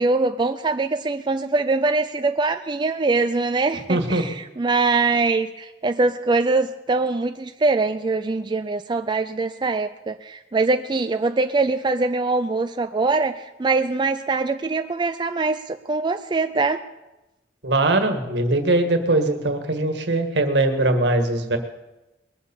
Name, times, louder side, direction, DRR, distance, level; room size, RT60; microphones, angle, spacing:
voice 1, 0.0-16.8, right 3 dB, 25° right, 8 dB, 0.4 m, -23 dB
voice 2, 3.9-4.2 17.6-21.6, right 2 dB, 70° right, 6 dB, 1.7 m, -21 dB
21.0 x 7.0 x 7.0 m, 1.0 s
head